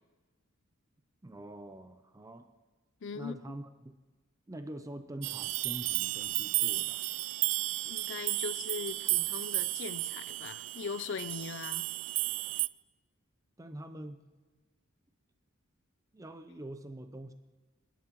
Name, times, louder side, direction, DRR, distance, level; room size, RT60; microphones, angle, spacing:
voice 1, 1.2-2.5 3.1-3.7 4.5-7.0 13.6-14.2 16.1-17.3, right 1 dB, 15° right, 0.5 m, -44 dB
voice 2, 3.0-3.6 7.9-11.9, left 5 dB, 60° left, 0.5 m, -40 dB
sound 1, 5.2-12.7, right 21 dB, 80° right, 0.3 m, -33 dB
25.5 x 11.0 x 3.0 m
head